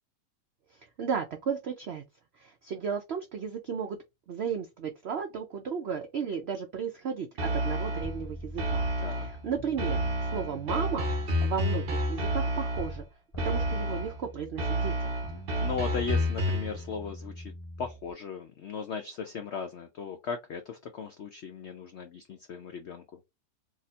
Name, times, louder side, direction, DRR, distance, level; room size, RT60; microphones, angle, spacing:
voice 1, 1.0-2.0 2.4-4.0 4.3-8.8 9.1-11.1 11.4-13.0 13.4-15.1, right 6 dB, 85° right, 0.5 m, -34 dB
sound 1, 7.4-8.2 8.6-9.4 9.8-13.0 13.4-14.2 14.6-16.8, equal, 45° right, 0.8 m, -30 dB
sound 2, 8.0-13.1 13.3-18.1, equal, 25° left, 0.8 m, -44 dB
voice 2, 15.6-17.5 17.8-23.2, left 6 dB, 90° left, 0.5 m, -37 dB
4.2 x 2.9 x 2.4 m
omnidirectional pair, 1.8 m